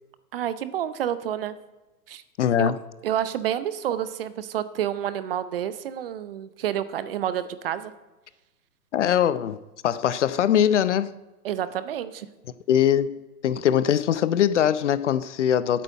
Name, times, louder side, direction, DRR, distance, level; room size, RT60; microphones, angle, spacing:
voice 1, 0.3-1.6 2.1-2.2 2.6-2.7 3.0-7.9 11.4-12.3, right 10 dB, 40° right, 0.7 m, -29 dB
voice 2, 2.4-2.8 8.9-11.1 12.7-15.8, left 9 dB, 50° left, 0.6 m, -22 dB
8.9 x 8.5 x 8.3 m
hypercardioid pair, 130°, 47 cm